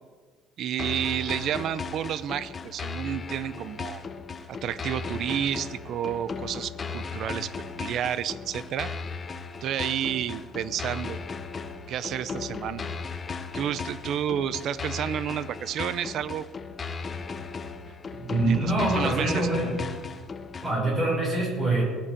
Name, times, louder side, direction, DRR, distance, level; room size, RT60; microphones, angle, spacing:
voice 1, 0.6-4.0 4.5-7.5 7.8-8.9 9.6-11.2 11.9-12.8 13.5-16.5 18.4-19.5, right 10 dB, 40° right, 15 dB, 0.6 m, -30 dB
sound 1, 0.8-20.8, left 5 dB, 20° left, 0.8 m, -36 dB
voice 2, 18.2-19.8 20.6-21.8, right 2 dB, 15° right, -4 dB, 6.4 m, -25 dB
19.0 x 8.7 x 7.0 m, 1.4 s
cardioid pair, 175°, 0 cm